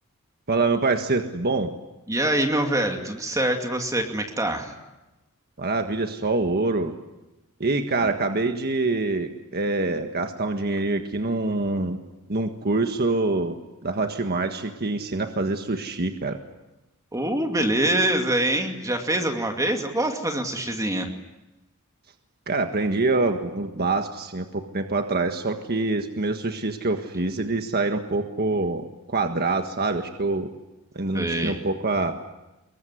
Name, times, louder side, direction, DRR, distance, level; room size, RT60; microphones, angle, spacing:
voice 1, 0.5-1.7 5.6-6.9 7.6-12.0 12.3-13.6 13.8-16.4 22.5-30.5 30.9-32.2, right 3 dB, 45° right, 5 dB, 1.6 m, -25 dB
voice 2, 2.1-4.7 17.1-21.1 31.1-31.6, right 1 dB, 15° right, 3 dB, 2.5 m, -24 dB
25.5 x 23.0 x 9.9 m, 1.0 s
head